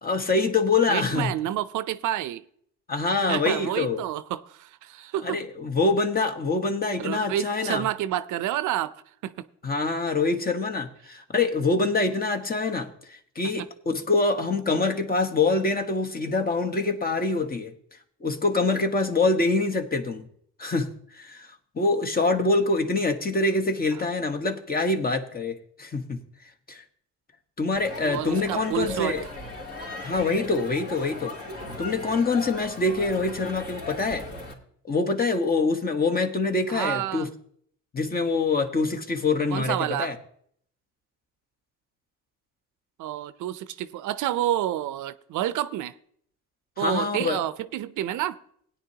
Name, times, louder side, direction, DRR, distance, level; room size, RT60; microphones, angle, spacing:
voice 1, 0.0-1.3 2.9-4.0 5.2-7.9 9.6-17.7 18.2-20.3 20.6-21.5 21.7-26.2 26.7-26.8 27.6-29.2 30.0-31.4 31.8-34.2 34.8-37.3 37.9-40.2 46.8-47.4, left 3 dB, 30° left, 1.2 m, -25 dB
voice 2, 0.9-2.4 3.2-5.4 7.0-9.0 9.2-9.5 13.6-13.7 24.0-24.1 28.1-29.2 36.7-37.3 39.5-40.1 43.0-45.9 46.8-48.4, right 12 dB, 80° right, 0.6 m, -29 dB
Crowd, 27.7-34.5, left 2 dB, 50° left, 2.9 m, -37 dB
17.0 x 9.7 x 2.8 m
cardioid pair, 90°, 30 cm